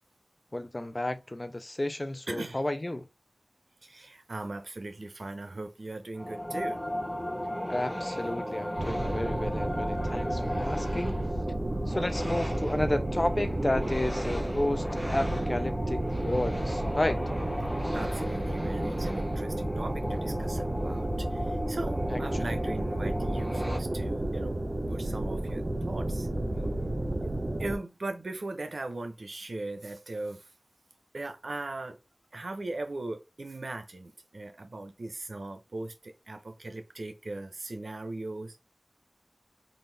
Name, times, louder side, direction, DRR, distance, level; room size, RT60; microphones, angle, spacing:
voice 1, 0.5-3.1 7.7-11.1 11.9-14.9 15.1-17.2 22.1-22.2, left 1 dB, 40° left, 0.6 m, -32 dB
voice 2, 2.3-2.6 3.8-6.8 17.9-24.6 24.9-26.3 27.2-30.4 31.1-32.0 32.3-38.6, right 2 dB, 85° right, 0.7 m, -39 dB
sound 1, 6.2-23.8, equal, 10° left, 0.8 m, -36 dB
sound 2, 8.8-27.8, right 1 dB, 55° right, 0.9 m, -32 dB
3.9 x 2.6 x 3.3 m
wide cardioid pair, 40°, 0 cm